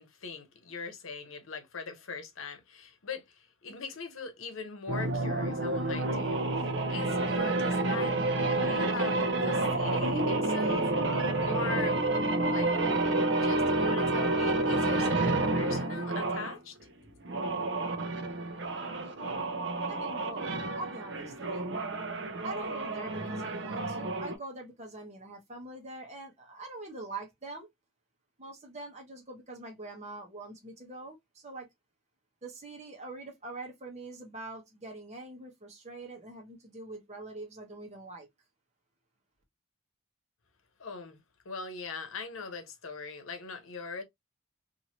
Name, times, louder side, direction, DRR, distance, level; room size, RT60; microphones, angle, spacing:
voice 1, 0.0-10.9 11.4-12.0 12.5-12.7 13.4-16.8 40.8-41.2 41.4-44.0, left 4 dB, 85° left, 0.8 m, -41 dB
sound 1, 4.9-16.6 17.2-24.4, right 2 dB, 60° right, 0.6 m, -29 dB
voice 2, 19.9-21.7 22.4-27.7 28.4-31.7 32.4-38.3, right 2 dB, 35° right, 1.0 m, -44 dB
2.9 x 2.7 x 2.8 m
head